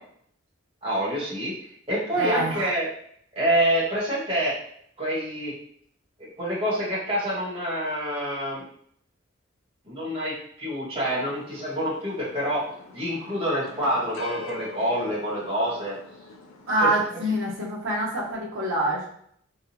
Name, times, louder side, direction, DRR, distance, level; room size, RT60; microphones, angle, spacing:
voice 1, 0.8-1.5 1.9-2.9 3.3-4.6 5.0-5.5 6.2-8.6 9.8-12.6 12.9-16.0 16.8-16.9, equal, 25° right, -8 dB, 1.4 m, -27 dB
voice 2, 2.1-2.7 16.7-19.1, right 1 dB, 75° right, -3 dB, 1.0 m, -25 dB
sound 1, 11.0-17.5, left 4 dB, 80° left, 0.5 m, -43 dB
3.6 x 2.2 x 2.9 m, 0.65 s
head